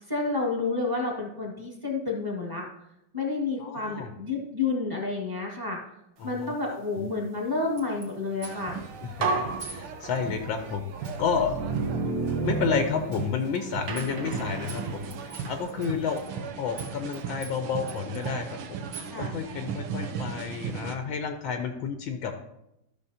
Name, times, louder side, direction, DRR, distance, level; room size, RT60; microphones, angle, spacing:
voice 1, 0.1-2.7 3.1-5.8 6.2-8.8 19.1-19.3 20.1-20.2, left 3 dB, 10° right, -2 dB, 1.5 m, -30 dB
voice 2, 3.6-4.1 6.2-6.5 6.9-7.1 9.2-9.3 9.6-10.8 11.2-11.6 12.4-16.2 16.6-18.5 19.2-22.4, left 6 dB, 75° left, 5 dB, 1.4 m, -30 dB
sound 1, 7.8-8.1 8.4-8.8 9.6-9.8 10.2-10.3 11.0-11.3 12.3-12.4 13.1-13.3 13.5-13.6 14.0-14.4 14.7-16.5 16.8-17.2 17.4-18.3 18.9-19.2, right 5 dB, 50° right, 2.2 m, -44 dB
sound 2, 8.4-21.0, right 5 dB, 90° right, 1.7 m, -37 dB
sound 3, 8.6-8.8 9.2-10.5 11.1-13.5 13.9-15.7, right 3 dB, 70° right, 1.7 m, -31 dB
13.5 x 6.3 x 2.8 m, 0.85 s
omnidirectional pair, 2.4 m